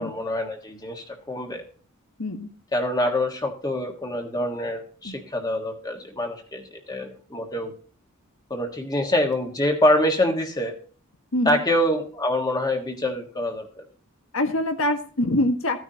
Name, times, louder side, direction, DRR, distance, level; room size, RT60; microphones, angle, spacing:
voice 1, 0.0-1.6 2.7-7.7 8.5-10.7 11.4-13.8, left 1 dB, 20° left, 4 dB, 1.5 m, -25 dB
voice 2, 2.2-2.5 5.0-5.2 11.3-11.6 14.3-15.8, left 1 dB, 65° left, 6 dB, 1.5 m, -24 dB
15.0 x 9.5 x 2.9 m, 0.40 s
head